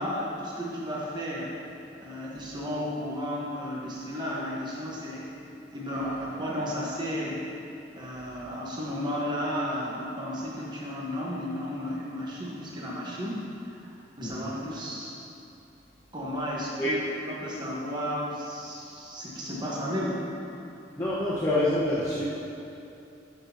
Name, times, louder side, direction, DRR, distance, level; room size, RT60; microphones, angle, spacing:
voice 1, 0.0-1.5 2.0-5.3 5.7-7.4 7.9-15.1 16.1-20.3, equal, 25° right, -5 dB, 1.0 m, -33 dB
voice 2, 21.0-22.2, left 1 dB, 20° left, -11 dB, 1.1 m, -26 dB
12.0 x 6.0 x 2.8 m, 2.7 s
head